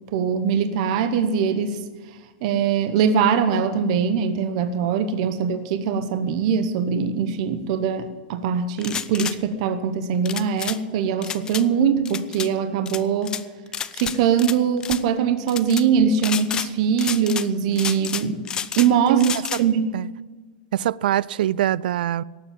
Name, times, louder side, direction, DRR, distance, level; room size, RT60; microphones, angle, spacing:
voice 1, 0.1-1.8 2.4-13.3 13.9-18.4 18.8-19.3 19.6-20.0, right 7 dB, 45° right, 0.9 m, -22 dB
sound 1, 8.8-9.4 10.3-10.8 11.2-11.6 12.1-12.5 12.9-13.4 13.7-14.6 14.8-15.0 15.5-15.8 16.2-16.7 17.0-17.5 17.8-18.9 19.2-19.6, left 8 dB, 15° left, 0.4 m, -30 dB
voice 2, 19.1-19.6 19.9-20.1 20.7-22.2, right 12 dB, 70° right, 0.3 m, -23 dB
18.0 x 7.4 x 7.1 m
supercardioid pair, 165°, 5 cm